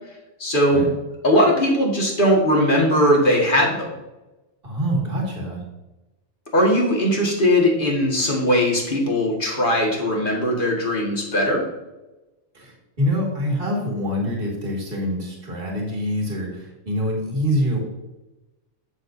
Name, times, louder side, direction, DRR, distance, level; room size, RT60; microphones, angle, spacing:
voice 1, 0.4-0.8 1.2-3.9 6.5-11.6, equal, 40° left, -1 dB, 1.9 m, -19 dB
voice 2, 4.6-5.6 12.5-17.8, equal, 45° right, -1 dB, 2.1 m, -25 dB
12.0 x 6.6 x 2.7 m, 1.0 s
omnidirectional pair, 1.4 m